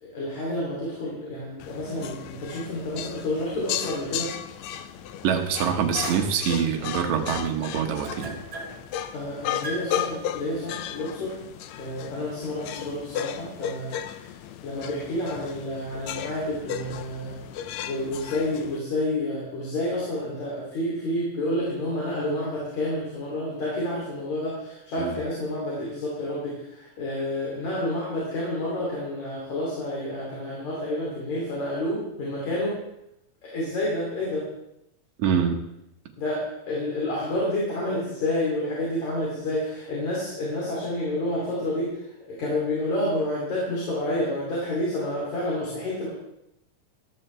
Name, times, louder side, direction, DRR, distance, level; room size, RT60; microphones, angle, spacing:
voice 1, 0.0-4.3 9.1-11.3 11.8-14.4 14.6-17.4 17.8-32.8 33.4-34.5 36.2-46.1, left 1 dB, 60° left, -6 dB, 4.2 m, -29 dB
sound 1, 1.6-18.8, left 10 dB, 80° left, 1.6 m, -35 dB
sound 2, 3.5-5.3 5.8-14.3, right 1 dB, 45° right, 3.8 m, -43 dB
voice 2, 5.2-8.4 25.0-25.2 35.2-35.6, right 7 dB, 65° right, 2 dB, 2.4 m, -25 dB
13.5 x 13.0 x 3.3 m, 0.84 s
omnidirectional pair, 3.7 m